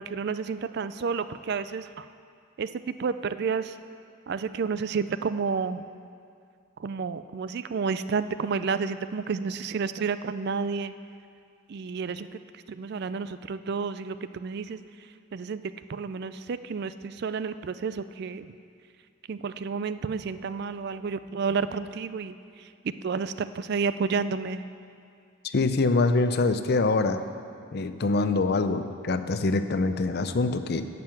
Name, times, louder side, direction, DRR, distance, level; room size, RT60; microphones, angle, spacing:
voice 1, 0.0-2.1 2.6-3.8 4.3-5.8 6.8-10.9 11.7-18.5 19.3-24.6, right 5 dB, 50° right, 13 dB, 0.4 m, -31 dB
voice 2, 25.5-27.2 27.7-30.9, left 3 dB, 50° left, 10 dB, 0.5 m, -24 dB
11.0 x 7.6 x 7.4 m, 2.3 s
head